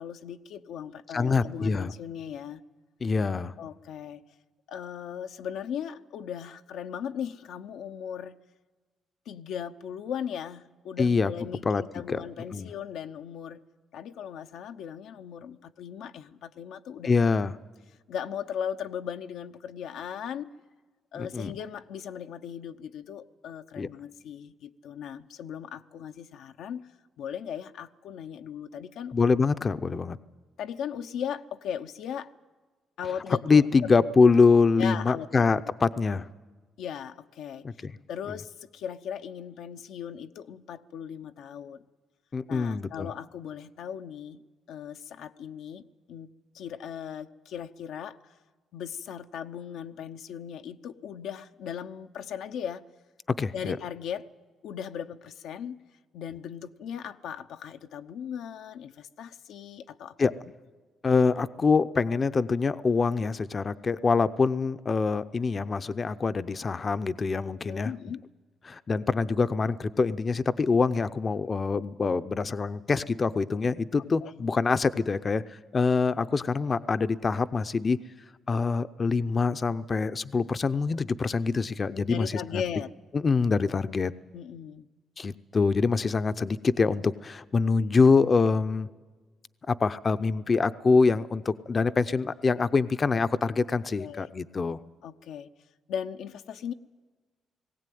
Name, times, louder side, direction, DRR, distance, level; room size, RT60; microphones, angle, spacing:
voice 1, 0.0-2.6 3.6-4.2 4.7-8.4 9.3-13.6 13.9-17.2 18.1-20.5 21.1-26.9 27.2-29.2 30.6-32.3 33.0-33.6 34.8-35.5 36.8-37.7 38.1-41.8 42.5-44.4 44.7-45.8 46.1-48.4 48.7-52.9 53.5-54.3 54.6-55.8 56.1-60.1 67.7-68.2 74.2-74.3 82.1-82.9 84.3-84.9 94.0-94.3 95.0-95.5 95.9-96.7, left 8 dB, 80° left, 8 dB, 0.7 m, -38 dB
voice 2, 1.1-1.9 3.0-3.5 11.0-11.3 11.6-11.8 12.1-12.2 12.5-12.7 17.0-17.5 21.2-21.5 23.8-23.9 29.1-30.2 33.5-36.3 37.6-37.9 38.3-38.4 42.3-43.1 53.3-53.8 60.2-60.3 61.0-67.9 68.7-78.0 78.5-82.6 83.1-84.1 85.2-88.9 89.7-94.8, left 4 dB, 35° left, 13 dB, 0.6 m, -25 dB
19.0 x 17.0 x 9.3 m, 1.3 s
cardioid pair, 90°, 0 cm